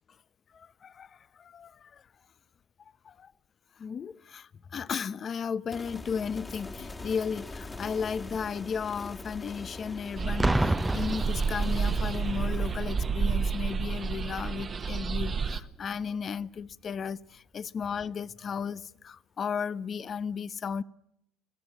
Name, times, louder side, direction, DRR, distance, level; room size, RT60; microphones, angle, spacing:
voice 1, 0.5-2.1 3.0-3.3 3.8-20.8, left 6 dB, 40° left, 0.8 m, -35 dB
sound 1, 5.7-17.1, left 2 dB, 20° left, 1.9 m, -44 dB
sound 2, 10.2-15.6, right 5 dB, 35° right, 1.3 m, -30 dB
Boom, 10.4-12.2 13.0-13.3, right 1 dB, 10° right, 0.8 m, -28 dB
25.0 x 16.0 x 9.4 m
supercardioid pair, 80°, 0 cm